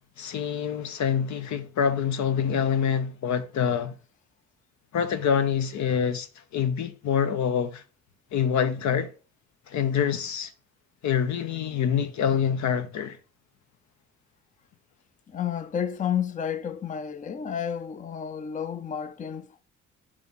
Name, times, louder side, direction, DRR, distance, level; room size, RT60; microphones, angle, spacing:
voice 1, 0.2-3.9 4.9-6.3 6.5-7.8 8.3-9.1 9.7-10.5 11.0-13.2, left 7 dB, 65° left, 0.9 m, -26 dB
voice 2, 15.3-19.6, left 8 dB, 25° left, 0.5 m, -31 dB
4.8 x 3.9 x 5.4 m
cardioid pair, 90°, 30 cm